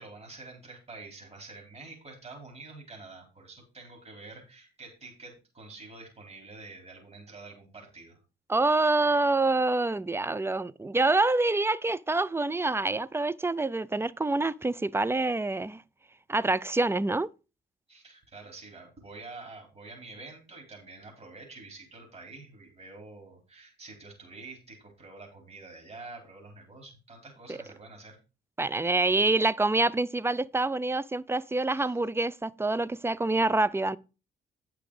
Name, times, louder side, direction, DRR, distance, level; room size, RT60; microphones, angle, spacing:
voice 1, 0.0-8.2 17.9-28.2 31.7-32.0, right 3 dB, 30° right, 4.2 m, -47 dB
voice 2, 8.5-15.8 16.3-17.3 27.5-27.6 28.6-34.0, right 2 dB, 10° right, 0.4 m, -26 dB
9.2 x 6.0 x 4.9 m
cardioid pair, 90°, 20 cm